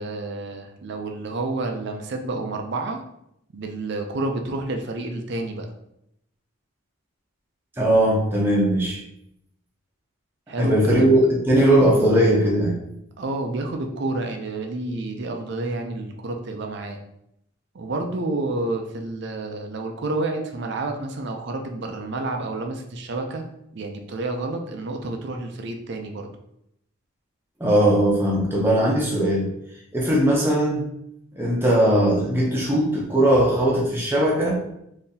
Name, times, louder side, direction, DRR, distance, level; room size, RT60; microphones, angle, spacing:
voice 1, 0.0-3.0 3.5-5.7 10.5-11.2 13.2-17.0 17.7-23.5 23.7-26.3, right 2 dB, 55° right, 4 dB, 0.4 m, -29 dB
voice 2, 7.8-9.0 10.6-12.8 27.6-29.5 29.9-30.9 31.4-34.6, right 1 dB, 10° right, -4 dB, 0.6 m, -19 dB
3.8 x 2.8 x 2.7 m, 0.78 s
head